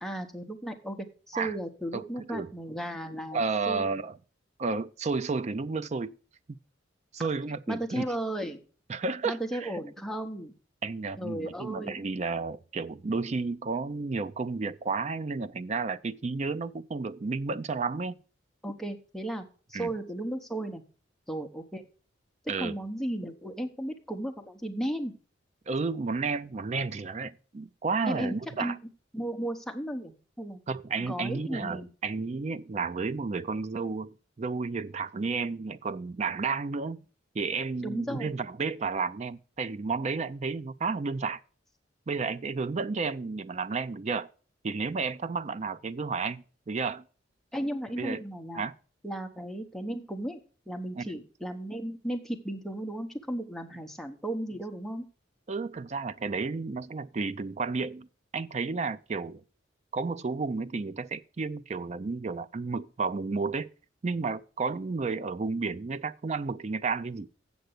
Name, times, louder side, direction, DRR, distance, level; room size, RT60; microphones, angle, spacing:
voice 1, 0.0-3.8 7.7-8.6 9.2-10.5 11.2-12.0 18.6-20.8 21.3-21.8 22.6-25.1 28.0-28.8 29.1-30.6 31.0-31.9 37.8-38.3 47.5-48.7 49.0-50.4 50.7-55.0, right 1 dB, ahead, 0.9 m, -35 dB
voice 2, 1.9-2.5 3.3-4.2 4.6-6.1 7.1-8.0 8.9-9.7 10.8-18.2 19.7-19.9 22.5-22.8 25.7-28.8 30.7-37.0 37.3-41.4 42.1-44.3 44.6-47.1 48.0-48.2 48.5-48.7 51.0-51.1 55.5-58.1 58.3-59.4 59.9-63.7 64.0-67.3, right 4 dB, 35° right, 0.4 m, -32 dB
7.9 x 6.7 x 6.6 m
head